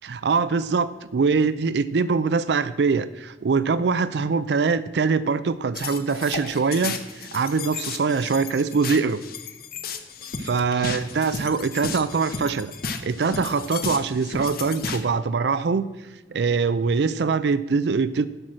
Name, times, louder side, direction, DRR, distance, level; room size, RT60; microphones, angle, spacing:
voice 1, 0.0-9.2 10.4-12.7 13.0-15.9 16.3-18.3, right 4 dB, 70° right, 15 dB, 0.4 m, -23 dB
sound 1, 5.7-15.0, left 5 dB, 55° left, 1.0 m, -34 dB
11.0 x 6.1 x 6.3 m, 1.1 s
head